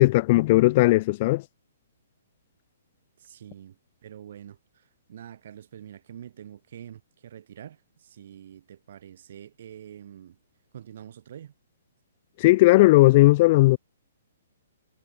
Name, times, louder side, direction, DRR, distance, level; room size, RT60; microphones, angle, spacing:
voice 1, 0.0-1.4 12.4-13.8, left 20 dB, 40° left, 0.4 m, -17 dB
voice 2, 3.2-10.4 10.7-11.5, right 10 dB, 60° right, 7.7 m, -46 dB
hypercardioid pair, 150°, 0 cm